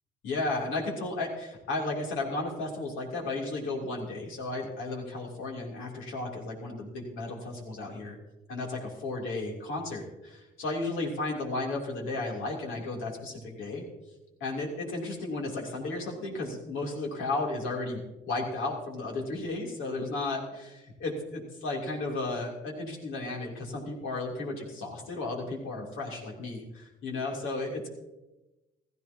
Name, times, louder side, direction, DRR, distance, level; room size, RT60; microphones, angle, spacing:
voice 1, 0.2-8.2 8.5-13.8 14.4-27.9, left 2 dB, 90° left, -1 dB, 3.2 m, -34 dB
15.5 x 15.0 x 2.9 m, 1.0 s
cardioid pair, 90°, 20 cm